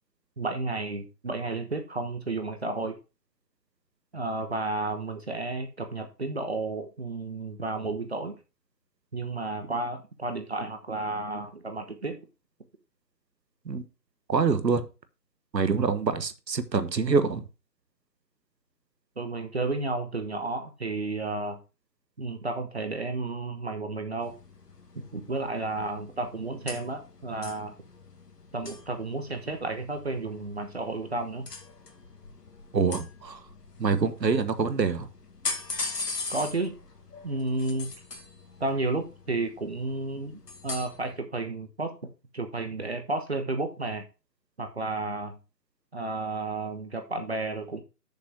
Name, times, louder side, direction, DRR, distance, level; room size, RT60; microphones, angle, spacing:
voice 1, 0.4-3.0 4.1-8.4 9.1-12.2 19.2-21.6 22.2-24.4 24.9-27.8 28.5-31.4 36.3-36.7 37.2-37.9 38.6-41.9 42.3-44.1 44.6-45.4 45.9-47.8, right 2 dB, 40° right, 1.1 m, -32 dB
voice 2, 14.3-14.9 15.5-17.5 32.7-33.5 33.8-35.1, right 5 dB, 85° right, 1.4 m, -25 dB
sound 1, 24.2-41.2, left 4 dB, 70° left, 2.0 m, -41 dB
6.7 x 5.3 x 6.1 m
hypercardioid pair, 175°, 49 cm